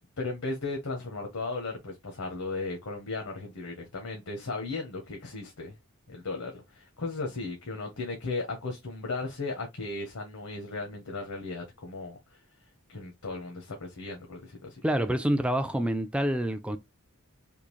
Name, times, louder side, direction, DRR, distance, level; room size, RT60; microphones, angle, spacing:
voice 1, 0.2-5.7 6.1-12.4 12.9-14.8, left 3 dB, 80° left, 1.0 m, -36 dB
voice 2, 14.8-16.8, right 1 dB, 5° right, 0.3 m, -27 dB
3.6 x 2.4 x 3.0 m
head